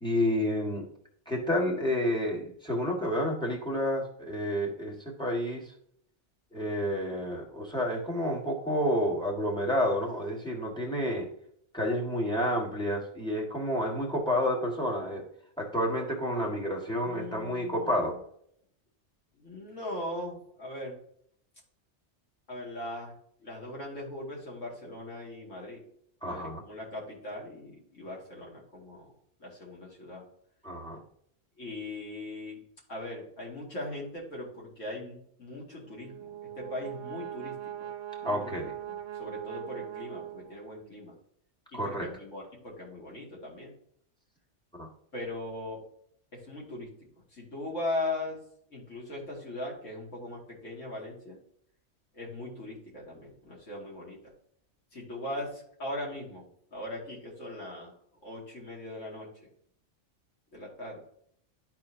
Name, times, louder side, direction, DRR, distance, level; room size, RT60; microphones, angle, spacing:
voice 1, 0.0-0.8 1.3-5.6 6.5-11.3 11.7-15.3 15.6-18.2 26.2-26.6 30.6-31.0 38.2-38.7 41.7-42.1 44.8-44.9, equal, 5° left, -1 dB, 1.8 m, -30 dB
voice 2, 16.9-18.1 19.3-21.0 22.5-23.1 23.4-25.8 26.2-29.1 29.4-30.2 31.6-32.6 32.9-37.5 37.8-37.9 38.2-38.6 38.9-41.1 41.7-43.7 45.1-45.8 46.3-46.9 47.3-48.4 48.7-51.4 52.1-54.2 54.9-57.9 58.2-59.3 60.5-61.0, left 1 dB, 85° left, -3 dB, 2.8 m, -39 dB
Brass instrument, 35.8-40.9, right 11 dB, 80° right, 0.9 m, -41 dB
12.0 x 4.4 x 2.8 m, 0.68 s
omnidirectional pair, 1.3 m